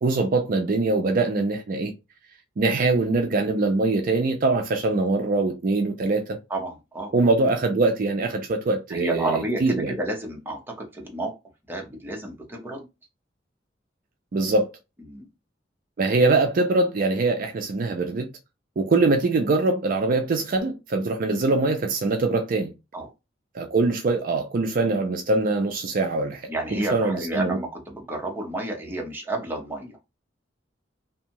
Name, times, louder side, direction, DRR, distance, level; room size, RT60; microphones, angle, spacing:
voice 1, 0.0-1.9 2.6-6.4 7.1-9.9 14.3-14.7 16.0-18.3 18.8-22.7 23.5-27.6, right 3 dB, 50° right, 0.4 m, -23 dB
voice 2, 6.5-7.1 8.9-11.4 11.7-12.9 15.1-15.3 22.9-23.1 26.5-30.0, right 2 dB, 10° right, 0.7 m, -31 dB
2.6 x 2.3 x 2.8 m
head